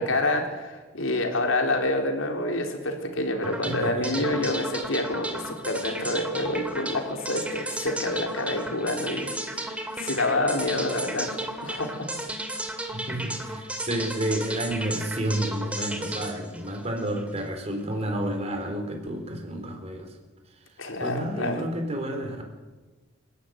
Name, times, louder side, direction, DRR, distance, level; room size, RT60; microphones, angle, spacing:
voice 1, 0.0-11.3 11.6-12.1 20.8-21.6, left 2 dB, 85° left, 3 dB, 3.9 m, -28 dB
sound 1, 3.4-17.5, right 1 dB, 5° right, 2.4 m, -34 dB
voice 2, 3.4-4.6 12.9-20.2 20.5-22.4, right 1 dB, 30° right, 3 dB, 4.0 m, -31 dB
28.5 x 12.5 x 9.3 m, 1.2 s
head